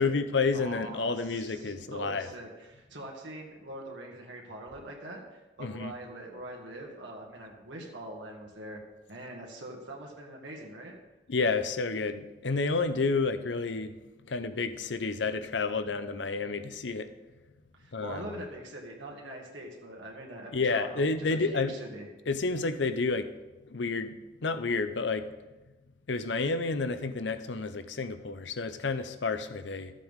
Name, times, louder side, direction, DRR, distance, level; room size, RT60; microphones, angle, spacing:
voice 1, 0.0-2.3 5.6-5.9 11.3-14.0 14.3-17.1 17.9-18.2 20.5-21.7 22.3-23.3 23.6-25.3 26.1-29.9, left 4 dB, 85° left, 10 dB, 0.7 m, -30 dB
voice 2, 0.5-8.8 9.1-11.0 17.7-22.1, right 1 dB, 90° right, -1 dB, 1.9 m, -43 dB
14.0 x 7.5 x 3.7 m, 1.1 s
head